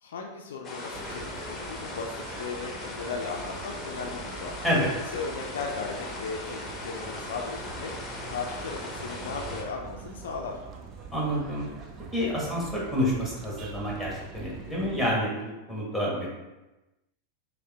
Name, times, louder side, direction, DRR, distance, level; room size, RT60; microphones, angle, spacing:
voice 1, 0.0-4.5 5.1-10.6, left 4 dB, 60° left, 2 dB, 0.4 m, -37 dB
sound 1, 0.6-9.6, left 2 dB, 15° left, 0.8 m, -38 dB
sound 2, 0.9-15.1, right 5 dB, 30° right, 0.4 m, -44 dB
voice 2, 11.1-11.7 12.1-16.3, equal, 5° right, -5 dB, 1.4 m, -28 dB
5.2 x 2.1 x 3.4 m, 1.0 s
figure-of-eight pair, 90°, 0 cm